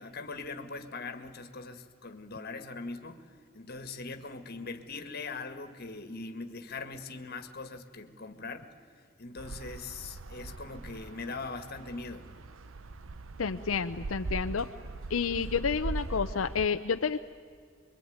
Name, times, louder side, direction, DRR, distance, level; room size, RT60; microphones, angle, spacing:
voice 1, 0.0-3.2 3.5-8.7 9.2-12.3, left 3 dB, 50° left, 9 dB, 1.8 m, -41 dB
sound 1, 9.4-16.7, right 3 dB, 80° right, 0.8 m, -40 dB
voice 2, 13.4-14.7 15.1-17.2, left 5 dB, 85° left, 7 dB, 0.7 m, -30 dB
25.5 x 23.0 x 9.5 m, 2.1 s
head